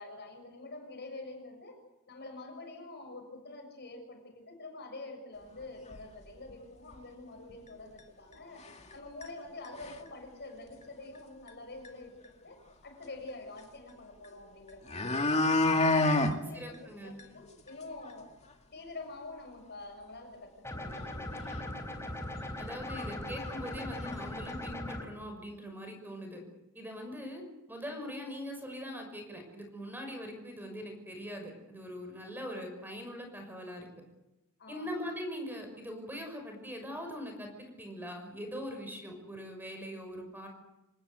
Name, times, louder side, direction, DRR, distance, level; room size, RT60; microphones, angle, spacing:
voice 1, 0.0-1.8 2.1-15.4 15.8-16.7 17.0-18.3 18.7-21.7 34.6-35.0, left 2 dB, 50° left, 4 dB, 6.6 m, -47 dB
sound 1, 5.9-6.0 6.5-6.6 6.9-7.0 8.0-8.1 8.6-8.9 9.2-9.3 9.6-10.1 11.5-11.6 11.8-11.9 14.2-14.3 14.7-16.3 16.7-16.8 17.2-17.3 17.7-17.8 18.1-18.2 21.0-21.1 21.5-21.6 22.3-22.4 22.9-23.1 23.3-24.1 24.5-24.6, left 2 dB, 30° left, 2.3 m, -28 dB
voice 2, 16.5-17.2 22.6-26.4 26.7-27.4 27.7-33.9 34.7-40.5, equal, 10° right, 4 dB, 6.0 m, -42 dB
sound 2, 20.6-25.0, left 1 dB, 10° left, 4.2 m, -39 dB
26.5 x 19.0 x 8.2 m, 0.96 s
head